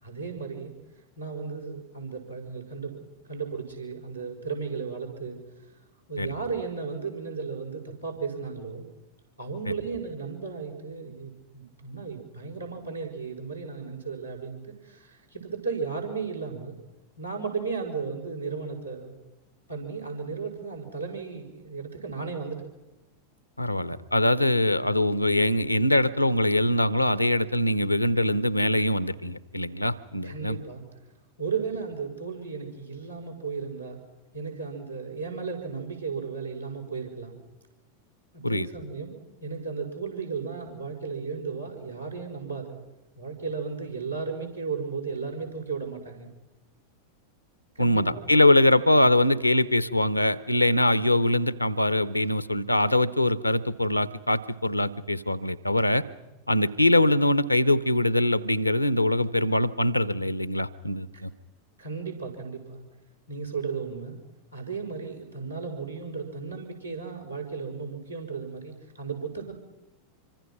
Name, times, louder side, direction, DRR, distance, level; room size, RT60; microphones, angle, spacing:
voice 1, 0.0-0.7 1.2-5.4 6.1-8.9 9.4-16.8 17.2-19.2 19.7-22.7 30.2-30.8 31.4-34.0 34.3-37.4 38.3-42.8 43.1-46.3 47.8-48.4 61.8-62.8 63.3-64.2 64.5-69.5, right 5 dB, 85° right, 0 dB, 5.7 m, -35 dB
voice 2, 23.6-30.6 38.4-38.7 47.8-56.0 56.5-61.3, left 1 dB, 85° left, 17 dB, 0.9 m, -23 dB
26.0 x 24.5 x 6.0 m, 1.0 s
figure-of-eight pair, 90°, 0 cm